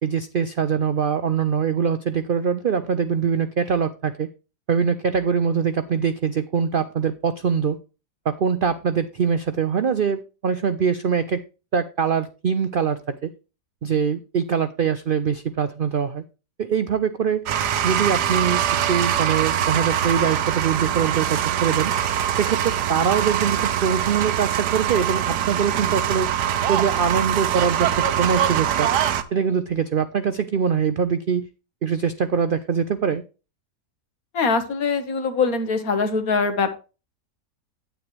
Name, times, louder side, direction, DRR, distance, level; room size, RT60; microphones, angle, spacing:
voice 1, 0.0-4.3 4.7-7.8 8.2-11.4 11.7-13.3 13.8-16.2 16.6-17.4 17.8-18.6 18.9-21.9 22.4-26.3 26.7-28.9 29.3-31.5 31.8-33.2, right 7 dB, 75° right, 11 dB, 0.4 m, -23 dB
sound 1, 17.5-29.2, right 10 dB, 90° right, 1.4 m, -23 dB
voice 2, 34.3-36.7, left 4 dB, 60° left, 8 dB, 1.7 m, -22 dB
9.2 x 9.0 x 3.2 m, 0.32 s
omnidirectional pair, 1.7 m